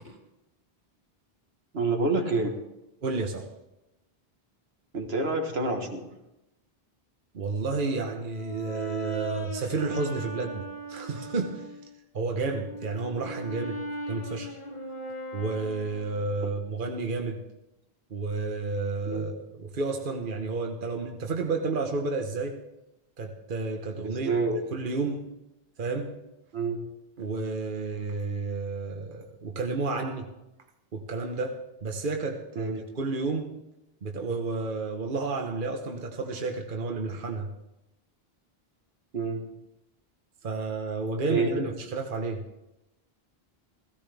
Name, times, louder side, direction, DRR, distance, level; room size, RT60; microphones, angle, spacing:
voice 1, 1.7-2.6 4.9-6.1 16.4-16.5 19.0-19.3 24.0-24.6 26.5-26.8 32.6-32.9 39.1-39.5 41.3-41.6, right 3 dB, 75° right, 4 dB, 1.7 m, -28 dB
voice 2, 3.0-3.5 7.3-11.8 12.1-13.8 14.1-14.6 15.3-17.4 18.1-22.6 23.2-24.3 24.7-25.3 25.8-26.2 27.2-30.3 30.9-33.6 34.0-37.5 40.4-42.4, right 3 dB, 55° right, 3 dB, 1.2 m, -31 dB
Brass instrument, 7.8-11.8 12.4-16.4, right 2 dB, 55° left, 1.9 m, -38 dB
16.5 x 15.5 x 3.5 m, 0.92 s
omnidirectional pair, 1.0 m